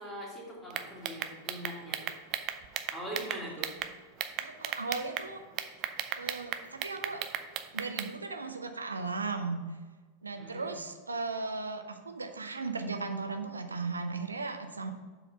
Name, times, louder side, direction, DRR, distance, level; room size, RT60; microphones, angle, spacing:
voice 1, 0.0-2.1 2.9-3.8 10.4-10.8, equal, 5° left, -5 dB, 2.4 m, -42 dB
sound 1, 0.7-3.9 4.2-5.3 5.6-8.1, right 11 dB, 40° right, 0.5 m, -35 dB
voice 2, 4.4-5.4 6.2-7.2 7.7-9.6 10.2-14.9, right 3 dB, 80° right, 6 dB, 0.7 m, -36 dB
7.2 x 4.1 x 5.7 m, 1.4 s
figure-of-eight pair, 90°, 0 cm